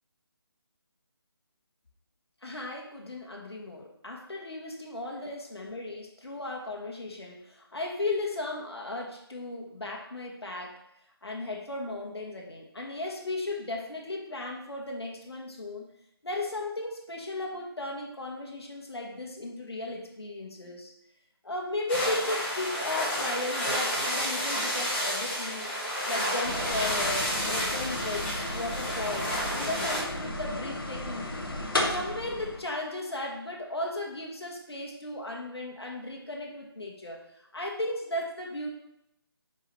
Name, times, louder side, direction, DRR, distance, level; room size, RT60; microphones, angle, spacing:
voice 1, 2.4-10.7 11.2-15.9 16.2-20.9 21.4-25.7 26.1-31.5 31.9-37.2 37.5-38.7, left 2 dB, 75° left, -1 dB, 1.4 m, -35 dB
sound 1, 21.9-30.0, equal, 25° left, 1.6 m, -31 dB
sound 2, 26.4-32.6, left 1 dB, 60° left, 1.1 m, -34 dB
4.9 x 4.9 x 4.2 m, 0.81 s
figure-of-eight pair, 160°, 13 cm